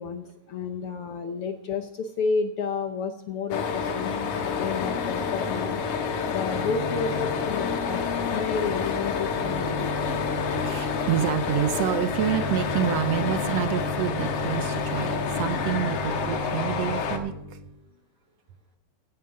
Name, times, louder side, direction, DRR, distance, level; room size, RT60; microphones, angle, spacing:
voice 1, 0.0-4.1 4.5-5.8 6.3-10.1, left 5 dB, 70° left, 7 dB, 1.4 m, -31 dB
sound 1, 3.5-17.2, left 6 dB, 90° left, 2.7 m, -29 dB
Organ / Church bell, 3.6-17.8, left 1 dB, 55° right, 6.6 m, -36 dB
voice 2, 10.5-17.6, right 10 dB, 70° right, 11 dB, 1.7 m, -28 dB
16.0 x 10.5 x 3.7 m, 0.89 s
omnidirectional pair, 3.4 m